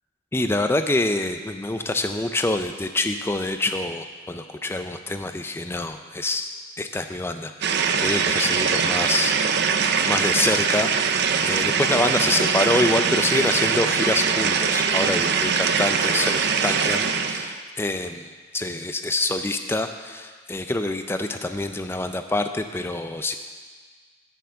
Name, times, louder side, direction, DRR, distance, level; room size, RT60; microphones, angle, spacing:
voice 1, 0.3-6.5 6.8-23.3, left 2 dB, 10° left, 8 dB, 0.4 m, -26 dB
sound 1, 7.6-17.6, right 6 dB, 50° right, 0.5 m, -22 dB
10.5 x 6.8 x 7.6 m, 1.5 s
head